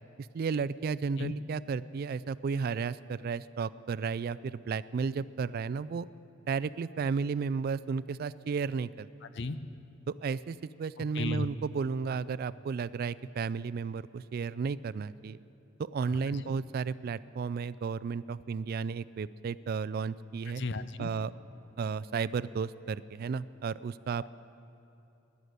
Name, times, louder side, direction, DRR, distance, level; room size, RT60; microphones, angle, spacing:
voice 1, 0.2-6.1 6.5-9.1 10.1-15.4 15.8-20.6 21.0-21.3 21.8-24.3, right 5 dB, 50° right, 17 dB, 0.3 m, -33 dB
voice 2, 9.2-9.6 11.1-11.5 16.1-16.5 20.6-21.1, left 3 dB, 60° left, 12 dB, 0.6 m, -35 dB
17.5 x 11.0 x 6.7 m, 3.0 s
head